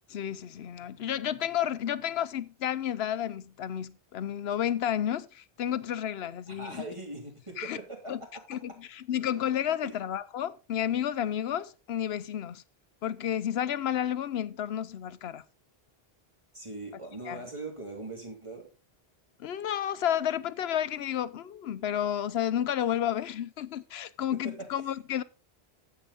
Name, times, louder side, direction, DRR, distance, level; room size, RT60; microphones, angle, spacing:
voice 1, 0.1-6.8 7.6-7.8 8.1-8.2 8.5-12.6 13.0-15.4 17.3-17.4 19.4-25.2, left 10 dB, 80° left, 0.9 m, -31 dB
voice 2, 6.5-8.4 9.8-10.0 16.5-18.7 24.4-24.7, right 2 dB, 30° right, 3.1 m, -41 dB
9.8 x 7.7 x 3.9 m
omnidirectional pair, 1.1 m